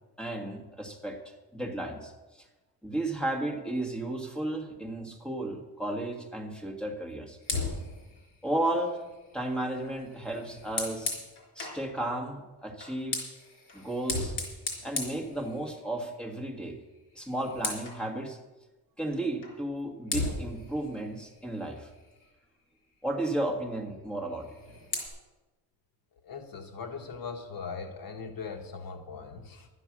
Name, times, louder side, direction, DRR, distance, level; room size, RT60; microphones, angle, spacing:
voice 1, 0.2-1.2 1.5-2.1 2.8-7.4 8.4-9.0 9.3-11.2 11.5-13.2 13.7-14.3 14.8-16.8 17.1-18.4 19.0-21.9 23.0-24.5, right 1 dB, ahead, 2 dB, 1.6 m, -33 dB
Fire, 7.4-11.9 12.7-16.0 16.4-16.6 17.0-18.0 19.4-19.6 20.1-22.4 24.3-25.1, left 3 dB, 75° left, 3.6 m, -37 dB
voice 2, 26.2-29.7, left 5 dB, 60° left, 5 dB, 1.3 m, -40 dB
11.5 x 10.0 x 6.1 m, 1.1 s
cardioid pair, 135°, 40 cm